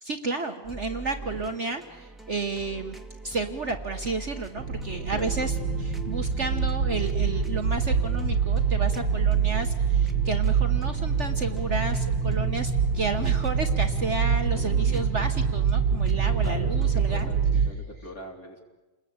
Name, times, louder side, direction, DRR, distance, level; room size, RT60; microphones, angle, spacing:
voice 1, 0.0-3.0 3.2-5.5 5.8-17.3, right 3 dB, 45° right, 5 dB, 1.4 m, -32 dB
sound 1, 0.6-17.5, right 3 dB, ahead, 2.1 m, -43 dB
sound 2, 4.6-17.7, right 6 dB, 90° right, 2.0 m, -25 dB
voice 2, 14.5-15.1 16.4-18.6, left 1 dB, 50° left, 1 dB, 4.3 m, -41 dB
29.5 x 21.0 x 8.8 m, 1.2 s
omnidirectional pair, 2.0 m